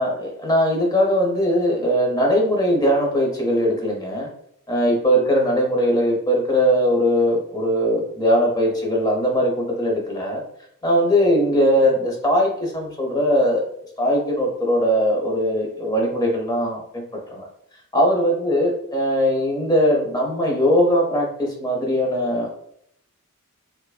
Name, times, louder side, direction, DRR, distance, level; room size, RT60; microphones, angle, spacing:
voice 1, 0.0-4.3 4.7-10.4 10.8-13.6 14.0-17.0 17.3-17.5 17.9-22.5, equal, 20° left, 0 dB, 0.7 m, -20 dB
4.5 x 2.5 x 2.3 m, 0.70 s
head